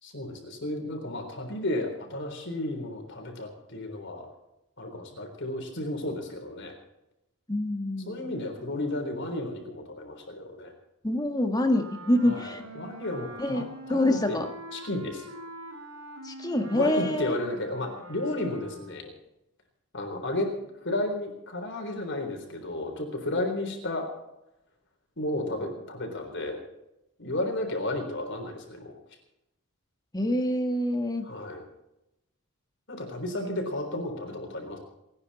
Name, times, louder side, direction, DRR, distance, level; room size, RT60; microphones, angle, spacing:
voice 1, 0.0-4.3 4.8-6.7 8.1-10.7 12.2-14.4 14.7-15.2 16.7-19.1 19.9-20.5 20.8-24.1 25.2-26.6 27.2-28.9 31.2-31.6 32.9-34.8, left 1 dB, 55° left, 3 dB, 3.8 m, -33 dB
voice 2, 7.5-8.3 11.0-12.6 13.4-14.5 16.2-17.3 30.1-31.2, left 1 dB, 20° left, 5 dB, 1.7 m, -26 dB
Wind instrument woodwind instrument, 11.7-19.1, right 1 dB, 80° right, 4.7 m, -44 dB
29.5 x 9.8 x 4.2 m, 0.88 s
head